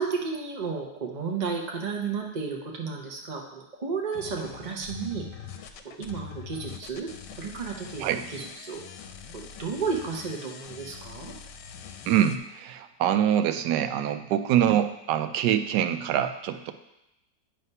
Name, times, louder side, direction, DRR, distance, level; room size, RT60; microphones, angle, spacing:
voice 1, 0.0-5.2 6.0-7.1 7.4-8.0 8.3-8.8 9.3-11.3, right 5 dB, 45° right, 0 dB, 0.5 m, -32 dB
sound 1, 4.1-12.4, left 8 dB, 80° left, 1.2 m, -43 dB
voice 2, 12.1-16.7, right 10 dB, 80° right, 10 dB, 1.1 m, -25 dB
9.4 x 3.3 x 5.4 m, 0.87 s
omnidirectional pair, 1.9 m